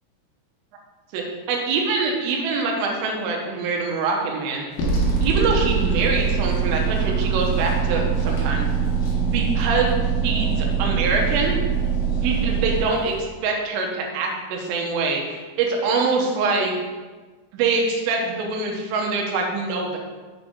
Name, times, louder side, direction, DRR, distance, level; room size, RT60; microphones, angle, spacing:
voice 1, 1.1-4.7 5.2-8.7 9.1-10.0 10.2-11.6 12.2-16.7 17.5-20.0, right 4 dB, 80° right, 1 dB, 3.5 m, -24 dB
sound 1, 4.7-13.2, left 1 dB, 65° left, 2.4 m, -44 dB
sound 2, 4.8-12.8, right 6 dB, 85° left, 2.0 m, -22 dB
7.3 x 6.6 x 3.7 m, 1.4 s
omnidirectional pair, 6.0 m